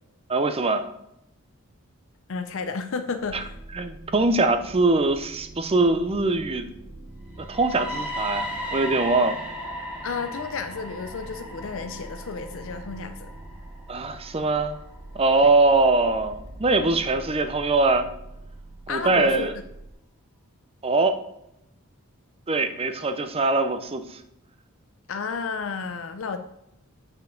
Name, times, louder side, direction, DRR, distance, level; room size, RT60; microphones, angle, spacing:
voice 1, 0.3-0.9 3.3-3.4 3.7-6.7 7.4-9.4 13.9-14.8 15.1-18.1 18.9-19.5 20.8-21.2 22.5-24.2, right 3 dB, 25° right, 9 dB, 0.5 m, -22 dB
voice 2, 2.3-3.6 10.0-13.3 15.4-15.5 18.9-19.5 25.1-26.4, left 5 dB, 65° left, 7 dB, 0.5 m, -32 dB
sound 1, 3.2-19.9, right 1 dB, 55° right, 1.2 m, -44 dB
sound 2, 7.3-15.2, equal, 5° right, 1.5 m, -36 dB
6.9 x 5.8 x 3.8 m, 0.81 s
head